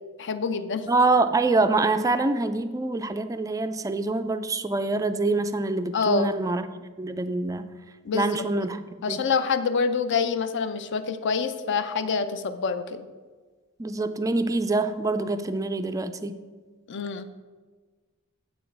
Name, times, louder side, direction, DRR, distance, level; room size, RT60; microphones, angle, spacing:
voice 1, 0.2-0.9 5.9-6.3 8.0-8.4 9.0-13.1 16.9-17.2, left 5 dB, 55° left, 11 dB, 0.5 m, -26 dB
voice 2, 0.9-6.7 7.0-7.8 8.1-8.8 9.1-9.2 13.8-16.4, right 3 dB, 15° right, 9 dB, 0.3 m, -25 dB
7.9 x 5.2 x 5.9 m, 1.4 s
head